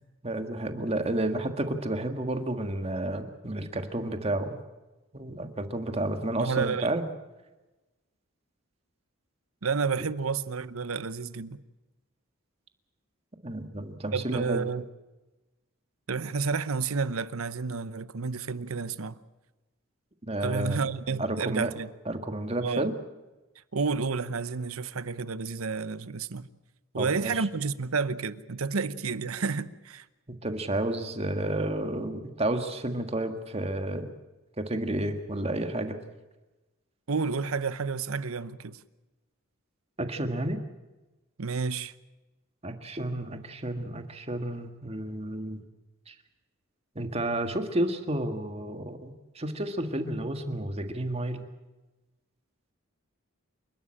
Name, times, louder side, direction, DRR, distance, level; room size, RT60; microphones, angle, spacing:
voice 1, 0.2-4.6 5.1-7.0 10.0-10.1 13.4-14.6 20.2-20.9 21.2-21.7 22.1-22.9 27.0-27.5 30.3-34.1 34.6-36.0 40.0-40.6 42.6-45.6 46.1-46.2 47.0-51.5, right 1 dB, 30° right, 1.7 m, -31 dB
voice 2, 6.4-6.9 9.6-11.6 14.1-14.8 16.1-19.2 20.4-21.9 22.6-22.9 23.7-26.5 26.9-30.0 37.1-38.8 41.4-41.9, right 5 dB, 85° right, 0.9 m, -30 dB
28.0 x 12.5 x 8.7 m
head